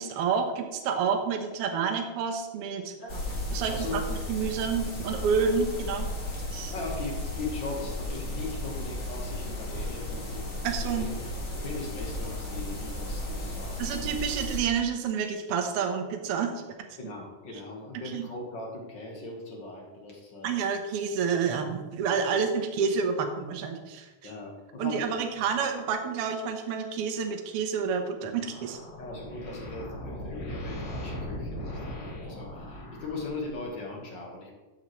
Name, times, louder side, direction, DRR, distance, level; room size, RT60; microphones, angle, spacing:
voice 1, 0.0-2.9 3.5-4.0 4.3-6.1 6.5-6.7 10.6-11.1 13.8-16.5 18.1-18.3 20.4-24.3 24.8-28.8, right 6 dB, 70° right, 4 dB, 1.4 m, -29 dB
sound 1, 3.1-14.6, left 1 dB, 35° left, 1.1 m, -34 dB
voice 2, 3.7-4.0 6.7-10.4 10.8-13.9 17.0-20.6 21.5-21.6 24.2-25.1 25.4-25.6 29.0-34.5, left 3 dB, 50° left, -1 dB, 1.4 m, -39 dB
sound 2, 28.3-33.7, left 1 dB, 75° left, 4.0 m, -39 dB
12.0 x 7.4 x 3.2 m, 1.2 s
omnidirectional pair, 4.2 m